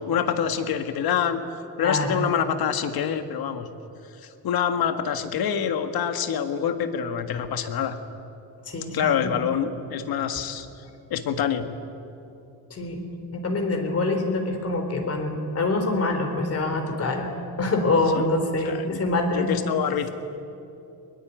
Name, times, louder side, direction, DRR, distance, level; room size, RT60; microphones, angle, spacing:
voice 1, 0.0-1.4 1.8-3.7 4.2-8.0 8.9-10.7 11.1-11.7 18.6-19.0 19.3-20.1, left 8 dB, 75° left, 8 dB, 1.9 m, -26 dB
voice 2, 1.8-2.2 8.7-9.3 12.7-13.1 13.3-17.3 17.6-19.5, left 2 dB, 40° left, 5 dB, 4.0 m, -25 dB
23.0 x 21.5 x 9.4 m, 2.7 s
cardioid pair, 155°, 36 cm